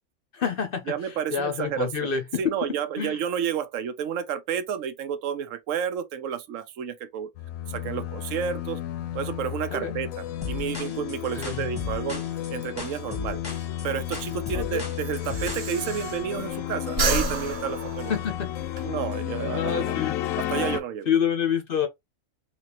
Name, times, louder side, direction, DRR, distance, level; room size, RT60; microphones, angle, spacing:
voice 1, 0.3-2.5 3.0-3.2 9.7-10.0 11.4-11.7 14.5-14.8 18.1-18.5 19.4-20.2 21.1-21.9, left 7 dB, 55° left, 0.7 m, -28 dB
voice 2, 0.9-2.1 2.4-7.3 7.7-8.8 9.1-13.4 13.8-18.1 18.8-19.9 20.4-21.1, right 8 dB, 75° right, 1.0 m, -31 dB
sound 1, 7.4-20.8, left 12 dB, 85° left, 1.0 m, -32 dB
sound 2, 10.4-15.7, left 4 dB, 20° left, 0.7 m, -36 dB
Breathing, 13.8-16.6 16.9-18.8, right 2 dB, 50° right, 1.1 m, -30 dB
3.4 x 2.9 x 2.8 m
omnidirectional pair, 1.4 m